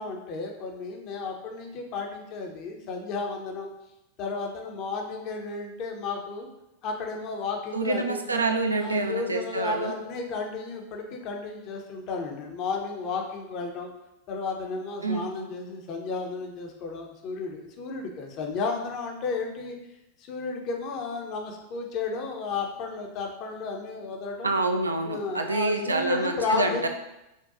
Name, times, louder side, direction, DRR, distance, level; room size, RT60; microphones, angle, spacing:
voice 1, 0.0-3.7 4.2-6.5 6.8-8.2 8.8-13.9 14.3-19.8 20.2-24.5 25.0-26.9, left 4 dB, 40° left, 2 dB, 0.6 m, -33 dB
voice 2, 7.7-9.9 15.0-15.5 24.4-26.9, right 3 dB, 80° right, 5 dB, 0.3 m, -27 dB
5.2 x 2.2 x 2.5 m, 0.92 s
figure-of-eight pair, 90°, 0 cm